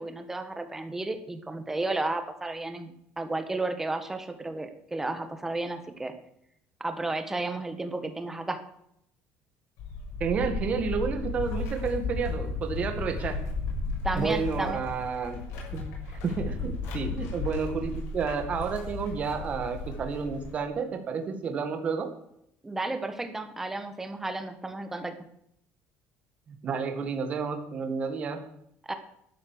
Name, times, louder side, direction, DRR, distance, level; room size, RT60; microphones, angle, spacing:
voice 1, 0.0-6.1 6.8-8.6 14.0-14.8 22.6-25.1 28.8-28.9, right 2 dB, 10° right, 8 dB, 1.4 m, -33 dB
sound 1, 9.8-20.6, left 3 dB, 85° left, 6.2 m, -34 dB
voice 2, 10.2-13.4 14.1-15.4 15.7-15.9 16.2-22.1 26.5-28.4, right 5 dB, 30° right, 6 dB, 1.9 m, -30 dB
12.0 x 11.5 x 6.6 m, 0.74 s
cardioid pair, 170°, 4 cm